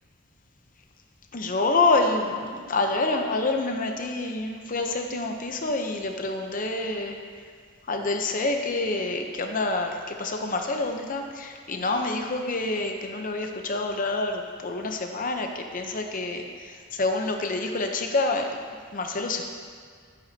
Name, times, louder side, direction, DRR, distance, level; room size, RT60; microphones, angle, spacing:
voice 1, 1.3-7.2 7.9-18.6 18.9-19.4, left 3 dB, 40° left, 4 dB, 0.7 m, -27 dB
14.0 x 8.0 x 2.8 m, 2.1 s
head